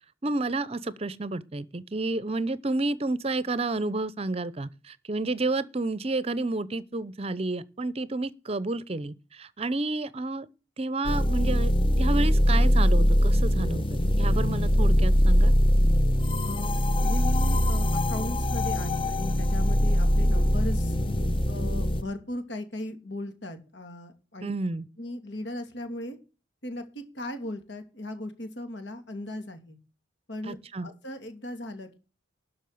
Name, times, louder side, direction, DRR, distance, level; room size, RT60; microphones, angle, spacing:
voice 1, 0.2-10.5 10.8-11.7 12.0-13.8 14.2-15.5 24.4-24.9 30.4-30.9, right 2 dB, 35° right, 0.7 m, -30 dB
sound 1, 11.0-22.0, equal, 30° left, 0.9 m, -22 dB
voice 2, 16.4-21.0 21.5-24.5 25.0-26.2 26.6-29.8 30.3-32.0, left 1 dB, 70° left, 2.8 m, -37 dB
12.5 x 5.6 x 7.8 m
head